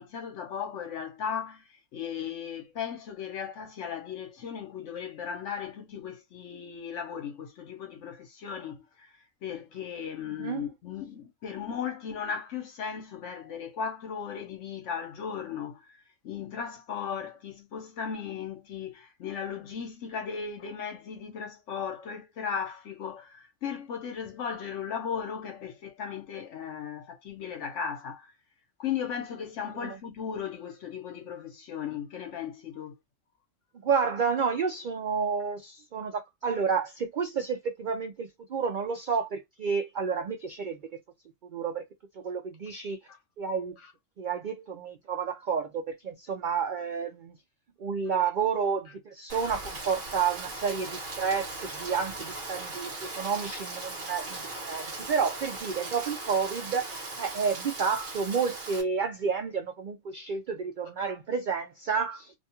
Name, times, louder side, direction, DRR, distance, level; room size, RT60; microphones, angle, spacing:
voice 1, 0.0-1.6 1.9-9.1 9.4-15.9 16.2-28.3 28.8-32.9 43.1-43.2, left 7 dB, 65° left, 1.0 m, -36 dB
voice 2, 33.8-40.8 41.5-41.8 42.1-43.0 43.4-43.8 44.2-47.4 47.8-62.3, right 6 dB, 75° right, 0.4 m, -30 dB
Rain, 49.3-58.8, right 2 dB, 45° right, 1.1 m, -38 dB
2.5 x 2.3 x 2.8 m
omnidirectional pair, 1.4 m